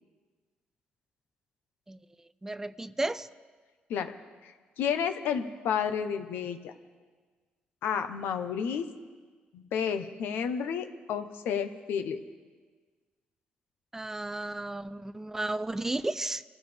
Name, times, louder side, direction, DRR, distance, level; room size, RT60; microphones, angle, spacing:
voice 1, 2.4-3.3 13.9-16.4, right 2 dB, 10° right, 15 dB, 0.4 m, -33 dB
voice 2, 4.8-6.7 7.8-8.8 9.5-12.2, left 7 dB, 90° left, 8 dB, 1.1 m, -31 dB
26.0 x 15.5 x 3.5 m, 1.4 s
cardioid pair, 130°, 3 cm